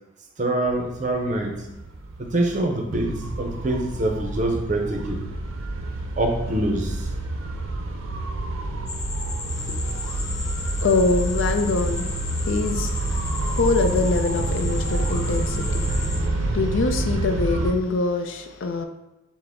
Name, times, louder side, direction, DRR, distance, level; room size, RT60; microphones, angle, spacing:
voice 1, 0.4-1.7 2.2-5.3 6.2-7.1, right 1 dB, 40° right, 0.5 m, -25 dB
sound 1, 0.7-17.7, right 2 dB, 85° right, 0.5 m, -28 dB
sound 2, 8.9-16.2, left 3 dB, 35° left, 1.2 m, -35 dB
voice 2, 9.6-10.4 10.8-12.1 12.4-18.8, left 3 dB, 75° left, 0.5 m, -25 dB
5.9 x 2.1 x 3.4 m
head